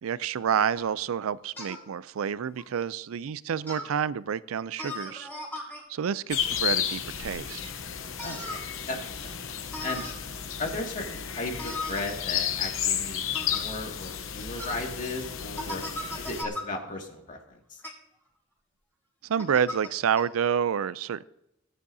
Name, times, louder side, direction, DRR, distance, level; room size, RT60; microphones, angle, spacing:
voice 1, 0.0-5.3 5.6-7.6 19.2-21.2, right 7 dB, 85° right, 0.4 m, -29 dB
sound 1, 0.8-0.9 1.6-1.8 2.5-2.6 3.7-3.9 4.8-5.8 8.2-8.6 9.7-10.1 11.6-12.0 13.3-13.6 14.6-14.8 15.5-16.6 17.8-17.9 19.4-19.9 20.1-20.2, left 1 dB, 10° left, 4.2 m, -37 dB
sound 2, 6.3-16.4, left 9 dB, 70° left, 0.9 m, -33 dB
voice 2, 8.2-9.4 9.8-10.0 10.6-15.8 16.2-17.8, left 2 dB, 40° left, 2.1 m, -36 dB
18.0 x 10.0 x 2.7 m
head